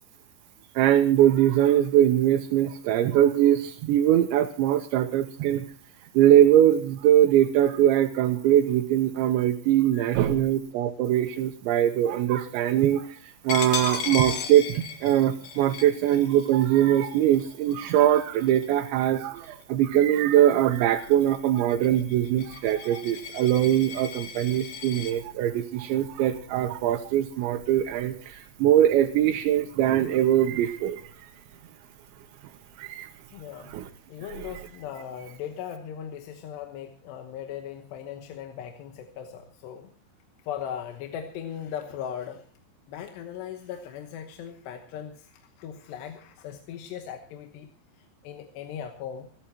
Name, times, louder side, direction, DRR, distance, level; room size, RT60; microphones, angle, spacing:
voice 1, 0.8-5.6 6.1-31.3 32.8-33.1 33.7-33.9 34.3-34.5, right 11 dB, 85° right, 4 dB, 3.1 m, -22 dB
voice 2, 9.8-10.3 33.3-33.8 34.1-39.9 40.4-42.4 42.9-47.7 48.0-49.3, left 9 dB, 80° left, 5 dB, 3.1 m, -38 dB
Coin (dropping), 13.5-18.9 19.4-19.6 20.0-25.1, left 7 dB, 55° left, 2.9 m, -37 dB
28.5 x 11.5 x 2.9 m, 0.42 s
omnidirectional pair, 5.1 m